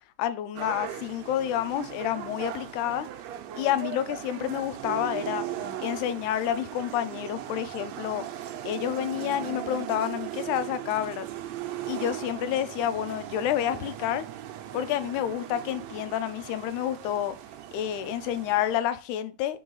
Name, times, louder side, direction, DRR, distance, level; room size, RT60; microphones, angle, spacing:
voice 1, 0.2-3.1 3.6-5.5 5.8-8.2 8.6-11.3 11.9-14.3 14.7-17.4 17.7-19.6, left 11 dB, 85° left, 2.0 m, -29 dB
sound 1, 0.5-18.8, right 11 dB, 75° right, 1.7 m, -38 dB
4.6 x 3.9 x 5.5 m
omnidirectional pair, 3.5 m